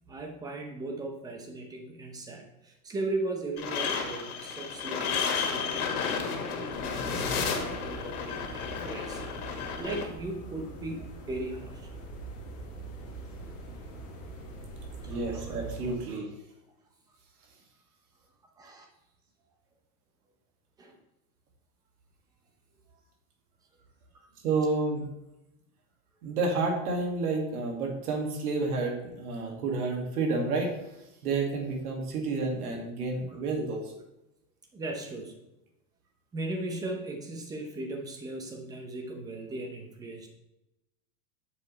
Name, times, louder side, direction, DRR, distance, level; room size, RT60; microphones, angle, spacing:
voice 1, 0.1-11.9 15.0-15.6 16.1-16.2 18.6-18.9 20.8-21.0 34.7-35.3 36.3-40.3, right 2 dB, 10° right, 3 dB, 0.7 m, -38 dB
sound 1, 3.6-10.0, left 6 dB, 75° left, 2.1 m, -32 dB
sound 2, 6.7-16.0, right 3 dB, 35° left, 2.7 m, -43 dB
voice 2, 15.1-16.3 24.4-25.0 26.2-30.8 31.2-33.9, right 3 dB, 85° right, 2 dB, 2.1 m, -30 dB
8.2 x 7.2 x 3.2 m, 0.91 s
supercardioid pair, 165°, 44 cm